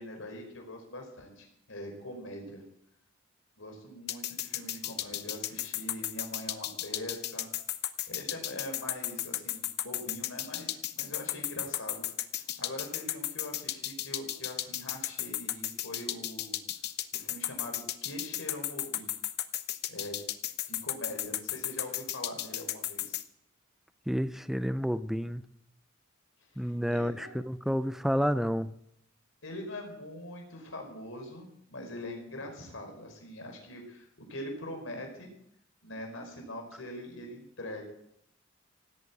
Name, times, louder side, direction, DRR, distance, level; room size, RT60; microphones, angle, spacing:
voice 1, 0.0-2.6 3.6-7.5 8.1-12.1 12.3-16.6 17.1-19.1 19.9-20.2 20.7-23.2 26.5-27.3 29.4-35.3 35.8-37.8, left 1 dB, 70° left, 3 dB, 4.8 m, -43 dB
sound 1, 4.1-23.2, left 13 dB, 55° left, 0.9 m, -34 dB
voice 2, 24.1-25.4 26.6-28.7, equal, ahead, 13 dB, 0.6 m, -30 dB
17.0 x 8.9 x 8.5 m, 0.75 s
head